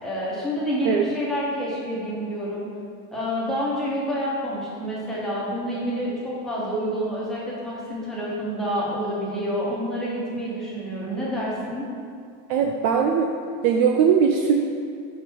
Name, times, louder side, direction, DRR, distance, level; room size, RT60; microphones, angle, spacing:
voice 1, 0.0-2.7 3.1-11.9, equal, ahead, -8 dB, 1.1 m, -28 dB
voice 2, 12.5-13.3 13.6-14.6, right 7 dB, 50° right, 2 dB, 0.4 m, -20 dB
6.5 x 5.2 x 4.5 m, 2.3 s
cardioid pair, 180°, 40 cm